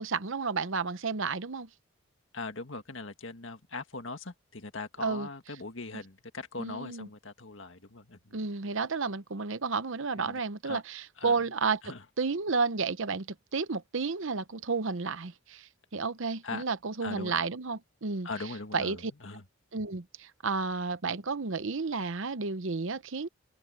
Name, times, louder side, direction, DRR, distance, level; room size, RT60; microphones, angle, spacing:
voice 1, 0.0-1.7 5.0-5.3 6.6-7.1 8.3-13.3 13.5-18.3 18.7-19.1 19.7-23.3, right 4 dB, 65° right, 0.8 m, -32 dB
voice 2, 2.3-8.4 10.2-10.4 10.7-10.8 11.2-11.4 11.8-12.0 16.4-16.6 17.0-17.4 18.2-19.4, left 3 dB, 65° left, 1.9 m, -40 dB
open air
head